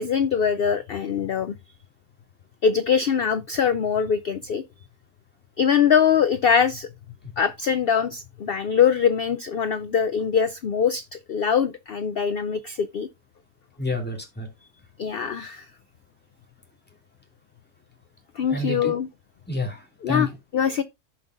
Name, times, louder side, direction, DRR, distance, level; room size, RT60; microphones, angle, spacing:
voice 1, 0.0-1.6 2.6-4.6 5.6-6.9 7.4-13.1 15.0-15.7 18.4-19.1 20.0-20.8, left 7 dB, 90° left, 0.5 m, -23 dB
voice 2, 13.8-14.5 18.5-18.9 19.5-20.3, left 2 dB, 5° left, 2.3 m, -28 dB
14.5 x 5.4 x 2.5 m
omnidirectional pair, 1.6 m